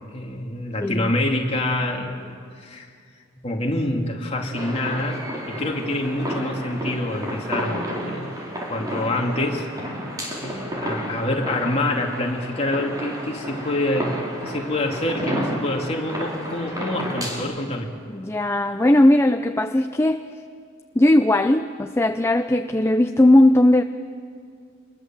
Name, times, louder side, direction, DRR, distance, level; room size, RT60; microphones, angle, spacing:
voice 1, 0.1-2.9 3.4-8.4 8.7-9.7 10.4-14.1 14.4-17.9, left 1 dB, 30° left, 1 dB, 2.6 m, -26 dB
voice 2, 0.8-1.1 18.1-20.2 20.9-23.8, left 1 dB, 15° left, 7 dB, 0.5 m, -18 dB
sound 1, 4.5-17.4, equal, 20° right, 4.8 m, -31 dB
26.5 x 21.5 x 7.4 m, 2.2 s
head